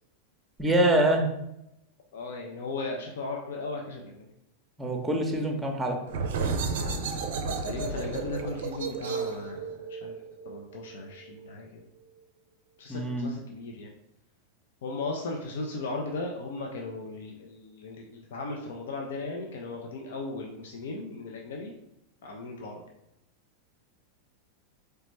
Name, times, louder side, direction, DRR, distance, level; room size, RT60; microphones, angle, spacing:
voice 1, 0.6-1.2 4.8-6.0 12.9-13.3, right 1 dB, 5° right, 3 dB, 0.8 m, -25 dB
voice 2, 2.1-4.2 7.6-10.1 10.5-11.8 12.8-13.9 14.8-21.7 22.2-22.8, left 3 dB, 60° left, 1 dB, 0.5 m, -37 dB
sound 1, 6.1-11.5, right 4 dB, 55° right, 0.5 m, -33 dB
4.0 x 3.3 x 3.1 m, 0.82 s
figure-of-eight pair, 90°, 0 cm